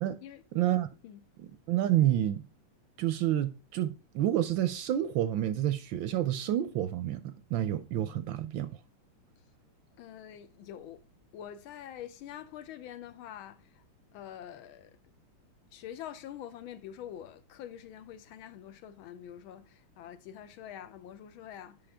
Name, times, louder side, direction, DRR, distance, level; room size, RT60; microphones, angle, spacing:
voice 1, 0.5-0.9 1.4-2.4 3.0-8.7, right 12 dB, 75° right, 1.2 m, -29 dB
voice 2, 10.0-11.0 11.3-13.8 14.1-14.9 15.7-21.8, left 10 dB, 75° left, 1.4 m, -45 dB
8.7 x 5.4 x 3.4 m
omnidirectional pair, 2.4 m